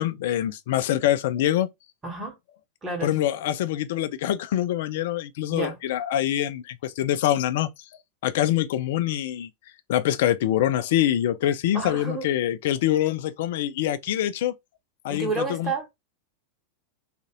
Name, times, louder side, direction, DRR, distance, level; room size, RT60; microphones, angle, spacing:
voice 1, 0.0-1.7 3.0-7.7 8.2-9.5 9.9-14.5 15.0-15.7, left 12 dB, 55° left, 0.3 m, -25 dB
voice 2, 2.0-2.3 2.8-3.1 5.5-5.8 11.7-12.3 15.1-15.9, right 3 dB, 20° right, 1.2 m, -30 dB
2.5 x 2.5 x 2.9 m
figure-of-eight pair, 90°, 0 cm